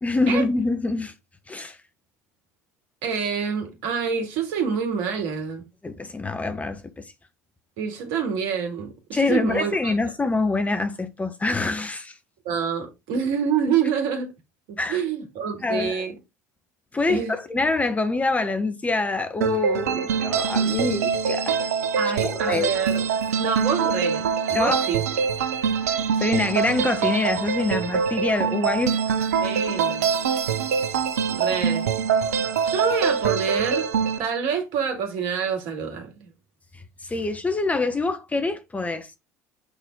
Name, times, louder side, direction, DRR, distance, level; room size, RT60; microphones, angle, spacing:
voice 1, 0.0-1.1 1.5-1.8 5.8-7.1 9.1-12.2 14.8-15.0 15.6-16.0 16.9-21.7 22.2-22.7 24.5-24.8 26.2-29.0 37.0-39.1, left 3 dB, 15° left, 1.3 m, -25 dB
voice 2, 3.0-5.7 7.8-9.9 12.4-14.3 14.7-16.1 17.1-17.3 22.0-23.0 23.4-25.0 29.4-30.1 31.3-31.9 32.6-33.9 34.2-36.3, right 6 dB, 65° right, 2.4 m, -27 dB
sound 1, 19.4-34.2, right 6 dB, 80° right, 0.6 m, -24 dB
8.2 x 4.2 x 3.7 m
hypercardioid pair, 70°, 8 cm